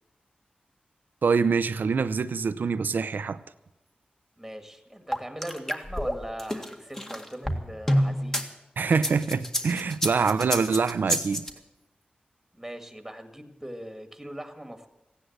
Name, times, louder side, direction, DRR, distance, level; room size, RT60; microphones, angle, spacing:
voice 1, 1.2-3.4 8.8-11.4, right 5 dB, 80° right, 0.6 m, -25 dB
voice 2, 4.4-8.5 12.5-14.9, right 1 dB, 5° right, 1.9 m, -40 dB
sound 1, 5.1-8.4 8.9-11.5, equal, 15° left, 1.9 m, -28 dB
15.5 x 10.0 x 8.0 m
cardioid pair, 60°, 3 cm